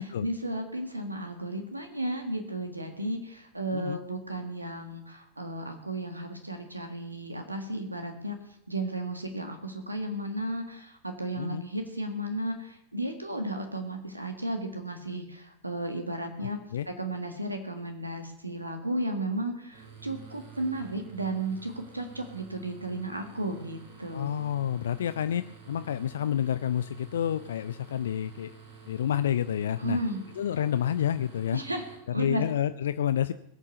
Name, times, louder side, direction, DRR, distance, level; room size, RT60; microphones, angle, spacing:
voice 1, 0.2-8.4 8.7-16.6 17.0-24.4 29.8-30.3 31.5-31.8 32.1-32.4, right 1 dB, 85° right, 6 dB, 1.6 m, -34 dB
voice 2, 16.4-16.9 24.1-28.6 28.9-30.0 30.4-31.6 32.2-33.3, left 10 dB, 65° left, 13 dB, 0.4 m, -29 dB
sound 1, 19.7-32.0, right 5 dB, 55° right, 5.7 m, -50 dB
21.0 x 7.3 x 6.7 m, 0.78 s
figure-of-eight pair, 90°, 0 cm